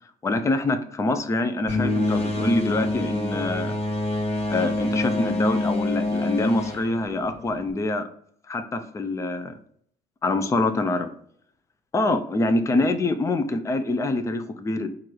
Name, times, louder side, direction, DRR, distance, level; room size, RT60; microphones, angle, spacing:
voice 1, 0.2-3.8 4.5-8.1 8.5-9.5 10.2-11.1 11.9-14.9, left 2 dB, 15° left, 8 dB, 0.5 m, -25 dB
sound 1, 1.7-7.7, left 2 dB, 35° left, 1.0 m, -26 dB
4.5 x 2.5 x 4.6 m, 0.62 s
cardioid pair, 110°, 17 cm